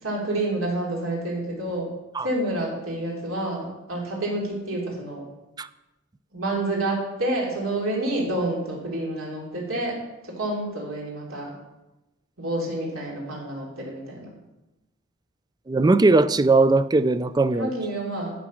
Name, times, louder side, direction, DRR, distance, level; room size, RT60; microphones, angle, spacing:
voice 1, 0.0-1.9 2.2-5.2 6.3-11.6 12.4-14.3 17.5-18.3, right 1 dB, 70° right, -3 dB, 3.3 m, -28 dB
voice 2, 15.7-17.7, right 3 dB, 20° right, 14 dB, 0.3 m, -19 dB
11.5 x 7.4 x 6.3 m, 0.99 s
head